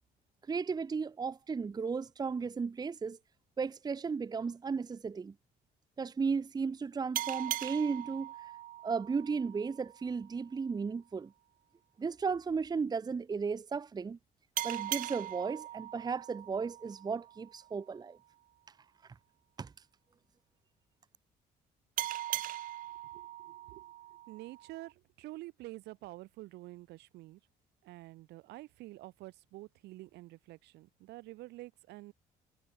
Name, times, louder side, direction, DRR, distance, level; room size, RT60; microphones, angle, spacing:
voice 1, 0.5-3.2 3.6-5.3 6.0-8.3 8.8-11.3 12.0-14.2 14.6-18.2 19.6-19.7, right 5 dB, 25° right, 0.9 m, -35 dB
sound 1, 7.1-10.4 14.6-17.8 22.0-24.9, right 14 dB, 55° right, 0.4 m, -40 dB
voice 2, 23.1-23.9 24.3-27.4 27.8-32.1, right 18 dB, 85° right, 3.9 m, -48 dB
cardioid pair, 110°, 17 cm